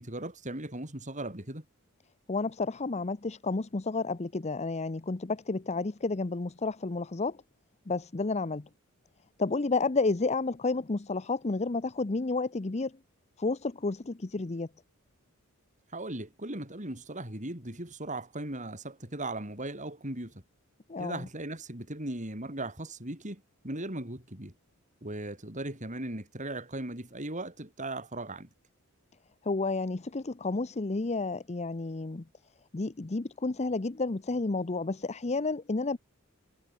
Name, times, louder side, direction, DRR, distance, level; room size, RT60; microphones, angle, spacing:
voice 1, 0.0-1.7 15.9-20.4 21.0-24.5 25.0-28.5, right 1 dB, 35° right, 6.1 m, -38 dB
voice 2, 2.3-7.4 7.9-8.7 9.4-12.9 13.4-14.7 20.9-21.3 29.4-32.2 32.7-36.0, left 3 dB, 30° left, 0.7 m, -31 dB
head